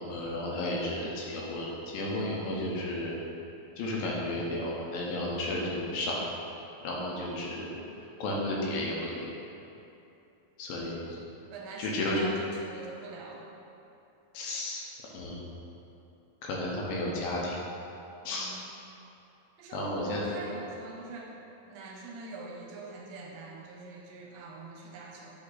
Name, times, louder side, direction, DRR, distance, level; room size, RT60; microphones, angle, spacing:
voice 1, 0.0-3.2 3.8-6.2 6.8-7.7 8.2-9.3 10.6-11.2 11.8-12.2 14.3-14.8 15.1-15.5 16.4-17.6 18.2-18.5 19.7-20.3, left 1 dB, 80° left, -4 dB, 2.4 m, -33 dB
voice 2, 11.5-13.5 18.2-18.6 19.6-21.3 21.7-25.3, right 3 dB, 80° right, -1 dB, 2.3 m, -43 dB
7.7 x 3.4 x 4.1 m, 2.8 s
omnidirectional pair, 4.3 m